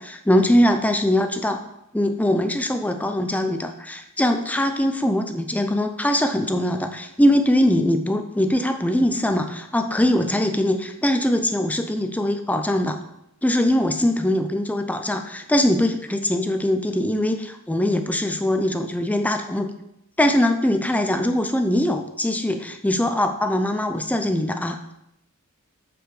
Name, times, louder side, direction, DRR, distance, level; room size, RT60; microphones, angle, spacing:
voice 1, 0.0-1.6 1.9-13.0 13.4-19.7 20.2-24.9, left 1 dB, 5° left, 7 dB, 0.5 m, -22 dB
7.0 x 6.4 x 4.8 m, 0.81 s
head